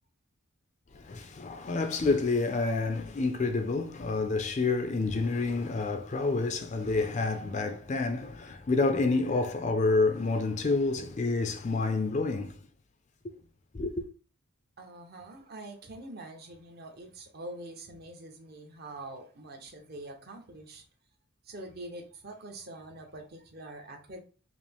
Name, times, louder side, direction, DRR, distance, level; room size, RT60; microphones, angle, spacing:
voice 1, 1.1-12.5 13.7-13.9, left 3 dB, 35° left, 0.4 m, -28 dB
voice 2, 14.8-20.8 21.4-24.2, right 2 dB, 45° right, 0.7 m, -45 dB
4.9 x 2.0 x 3.4 m
head